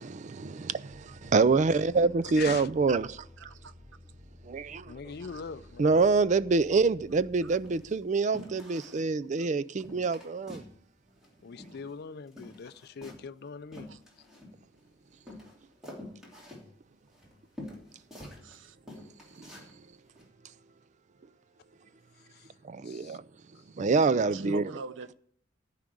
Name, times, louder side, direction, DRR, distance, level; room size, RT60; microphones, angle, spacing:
voice 1, 0.0-3.2 4.4-4.9 5.8-10.6 22.6-23.2 23.8-24.7, right 4 dB, 40° right, 0.4 m, -26 dB
sound 1, 0.9-8.3, left 1 dB, 20° left, 0.7 m, -53 dB
voice 2, 2.3-2.7 4.8-6.1 11.4-13.9 22.2-22.5 22.8-23.2 23.5-23.6, left 6 dB, 55° left, 0.4 m, -42 dB
voice 3, 3.4-3.7 5.3-5.4 7.4-7.5 8.7-8.8 13.9-14.0 18.4-18.8 24.3-25.1, right 2 dB, 85° right, 0.6 m, -42 dB
sound 2, 6.9-7.1 7.5-8.0 8.3-9.1 9.4-9.5 9.8-10.8 11.0-12.0 12.3-14.8 15.3-18.6 18.9-19.7 20.1-20.3, left 1 dB, 5° right, 3.0 m, -47 dB
14.0 x 5.0 x 9.2 m
head